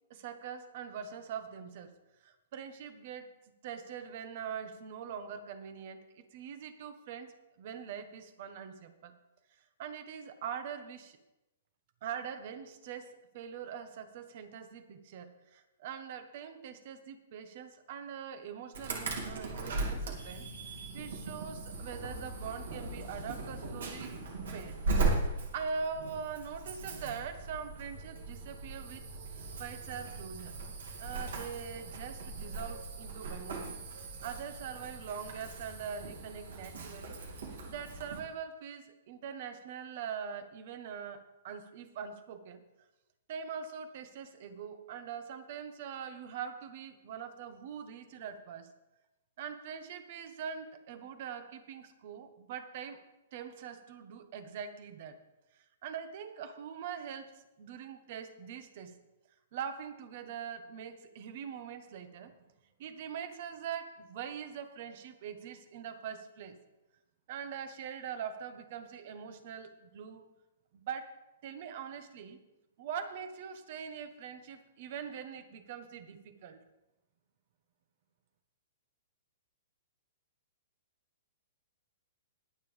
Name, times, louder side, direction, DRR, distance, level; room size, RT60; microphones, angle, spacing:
voice 1, 0.1-1.9 2.2-3.3 3.6-9.1 9.8-11.2 12.0-24.2 24.5-24.8 25.5-29.1 29.3-30.6 31.0-42.6 43.3-48.7 49.4-53.0 53.3-55.2 55.5-59.0 59.5-62.5 62.8-66.6 67.3-70.2 70.7-72.4 72.8-76.6, right 7 dB, 55° right, 9 dB, 1.3 m, -43 dB
Insect / Alarm, 18.7-38.2, right 3 dB, 75° right, 2.6 m, -38 dB
20.5 x 7.3 x 3.5 m, 0.98 s
hypercardioid pair, 140°, 0 cm